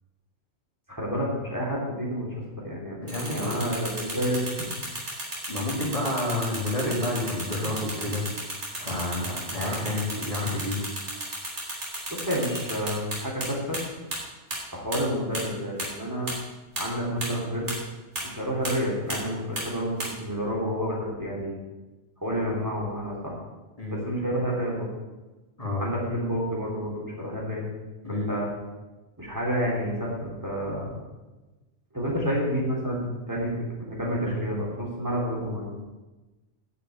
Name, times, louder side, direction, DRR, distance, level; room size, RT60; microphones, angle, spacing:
voice 1, 0.9-2.3 2.6-3.0 3.3-4.7 12.1-13.8 14.7-16.3 16.8-17.7 18.2-21.6 22.2-23.3 23.9-24.9 25.8-27.6 28.1-28.5 29.2-30.9 31.9-35.7, equal, 15° right, -4 dB, 3.6 m, -29 dB
voice 2, 3.0-3.6 5.5-8.2 8.8-10.9 23.8-24.0 25.6-25.8 28.0-28.3, left 1 dB, 30° left, -3 dB, 3.2 m, -29 dB
sound 1, 3.1-13.5 13.7-13.8 14.1-14.2 14.5-14.6 14.9-15.0 15.3-15.4 15.8-15.9 16.3-16.4 16.8-16.9 17.2-17.3 17.7-17.8 18.2-18.3 18.6-18.7 19.1-19.2 19.6-19.7 20.0-20.1, right 1 dB, 75° right, 3.6 m, -32 dB
10.0 x 6.7 x 8.7 m, 1.2 s
omnidirectional pair, 1.2 m